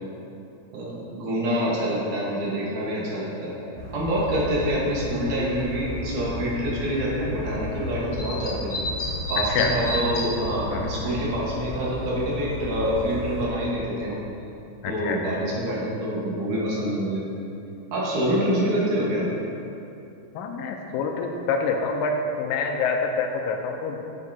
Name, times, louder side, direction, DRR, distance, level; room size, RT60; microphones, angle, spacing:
voice 1, 0.7-3.6 3.9-8.9 9.3-14.2 14.9-17.3 17.9-19.3, equal, 65° right, -5 dB, 2.8 m, -26 dB
sound 1, 3.8-13.5, left 1 dB, 30° left, 1.5 m, -32 dB
voice 2, 14.8-15.4 20.4-24.0, left 4 dB, 80° left, 3 dB, 2.2 m, -26 dB
9.5 x 8.3 x 2.8 m, 2.8 s
omnidirectional pair, 4.1 m